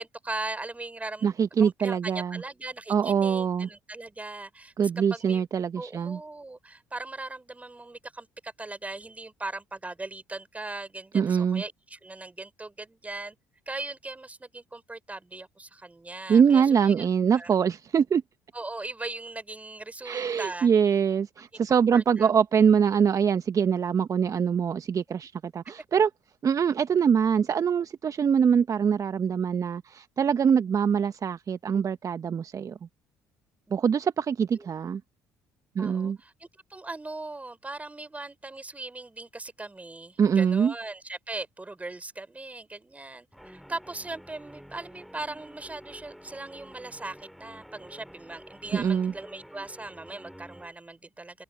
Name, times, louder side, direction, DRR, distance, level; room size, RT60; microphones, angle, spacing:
voice 1, 0.0-1.3 1.6-5.4 5.8-13.3 13.7-17.1 17.3-17.5 18.5-20.7 21.7-22.3 33.7-33.8 34.5-34.7 35.8-51.4, right 2 dB, 15° right, 5.0 m, -39 dB
voice 2, 1.2-2.4 2.9-3.7 4.8-6.2 11.1-11.6 16.3-18.2 20.0-26.1 26.4-32.8 33.7-35.0 35.7-36.2 40.2-40.7 48.7-49.1, right 7 dB, 40° right, 1.1 m, -24 dB
Guitar, 43.3-50.7, equal, ahead, 3.1 m, -49 dB
open air
hypercardioid pair, 55°, 8 cm